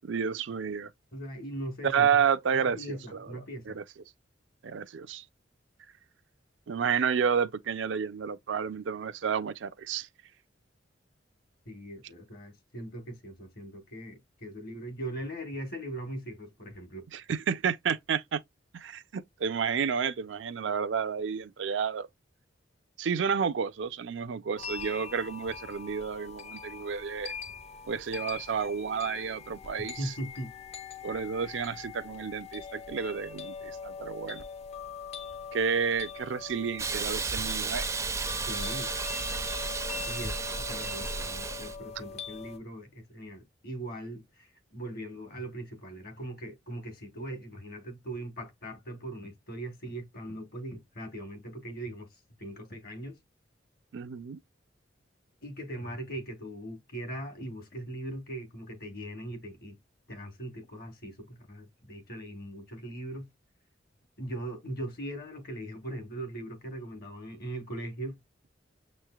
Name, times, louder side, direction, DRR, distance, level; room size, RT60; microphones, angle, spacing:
voice 1, 0.0-0.9 1.8-3.3 3.7-3.8 4.6-5.2 6.7-10.1 17.1-18.4 18.7-22.1 23.0-27.3 27.9-30.1 31.0-34.5 35.5-37.9 53.9-54.4, right 6 dB, 75° right, 0.4 m, -30 dB
voice 2, 1.1-2.2 2.5-3.8 11.7-17.1 29.8-30.5 38.5-38.9 40.0-52.1 52.4-53.2 55.4-59.8 60.1-63.3 64.2-68.2, right 1 dB, 55° left, 1.3 m, -40 dB
sound 1, 24.6-42.6, left 6 dB, 35° left, 0.5 m, -42 dB
Hiss, 36.8-41.8, right 4 dB, 15° right, 0.4 m, -33 dB
6.4 x 3.1 x 2.3 m
head